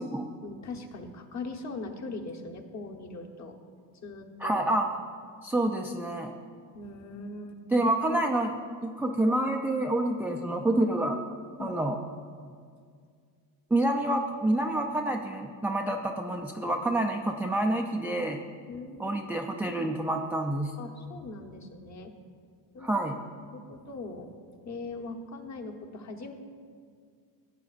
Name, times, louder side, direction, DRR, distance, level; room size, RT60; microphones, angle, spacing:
voice 1, 0.4-3.6 4.0-4.6 6.7-7.7 11.6-11.7 18.7-19.2 20.8-22.1 22.7-23.0 23.4-24.3 24.6-26.3, left 3 dB, 35° left, 2 dB, 1.1 m, -40 dB
voice 2, 4.4-4.8 5.4-6.3 7.7-8.6 8.8-11.2 11.6-12.0 13.7-18.4 19.0-20.7 22.8-23.2, right 1 dB, 5° right, 2 dB, 0.3 m, -28 dB
15.5 x 8.2 x 2.5 m, 2.1 s
supercardioid pair, 105°, 45 cm